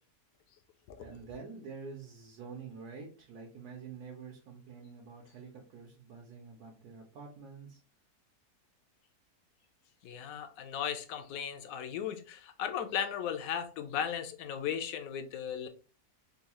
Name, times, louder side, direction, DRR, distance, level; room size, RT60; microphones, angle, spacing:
voice 1, 1.0-7.8, right 5 dB, 75° right, 0 dB, 1.3 m, -47 dB
voice 2, 10.0-15.7, left 8 dB, 70° left, 8 dB, 0.9 m, -36 dB
3.7 x 2.3 x 2.9 m, 0.35 s
omnidirectional pair, 1.7 m